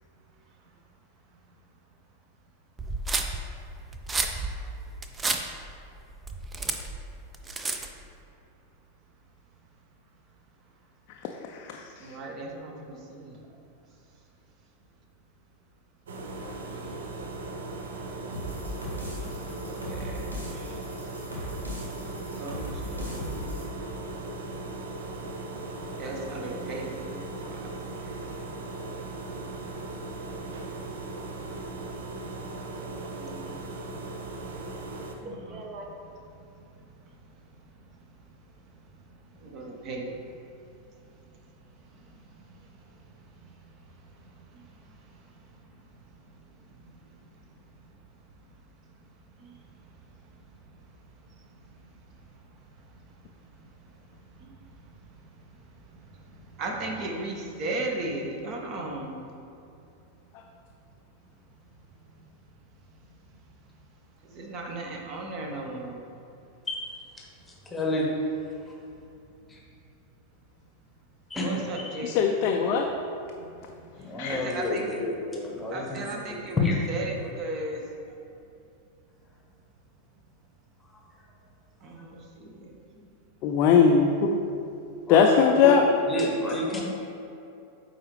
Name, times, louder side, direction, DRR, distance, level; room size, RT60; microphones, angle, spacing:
sound 1, 2.8-8.1, right 3 dB, 15° right, 0.4 m, -31 dB
voice 1, 11.4-12.1 16.4-16.5 72.0-72.9 74.2-74.4 83.4-84.4 85.1-85.8, left 6 dB, 40° left, 2 dB, 0.4 m, -21 dB
voice 2, 12.0-13.4 16.7-16.9 19.4-20.8 22.3-23.7 24.4-24.8 25.4-25.6 26.0-28.4 28.8-29.0 30.0-30.1 30.7-31.7 32.7-33.9 35.2-36.5 37.1-37.2 39.4-40.2 41.8-43.1 43.4-43.5 44.2-45.2 45.5-45.7 46.3-46.4 46.8-47.2 49.4-49.6 51.3-51.8 52.9-53.0 53.8-53.9 54.3-55.1 55.5-59.2 62.1-62.2 63.5-63.6 64.2-66.1 71.3-72.2 73.4-73.6 74.3-75.0 75.7-77.8 81.8-83.1, right 2 dB, 35° right, 1 dB, 0.9 m, -38 dB
sound 2, 16.1-35.1, right 2 dB, 60° right, 0.6 m, -38 dB
sound 3, 18.3-23.6, left 1 dB, 80° right, 1.1 m, -38 dB
voice 3, 67.2-68.1 68.6-68.7 69.5-69.6 71.3-71.9 74.0-76.9 80.8-81.0 85.1-85.7 86.1-86.8, left 1 dB, 10° left, -2 dB, 1.0 m, -30 dB
9.1 x 3.9 x 3.2 m, 2.7 s
figure-of-eight pair, 90°, 0 cm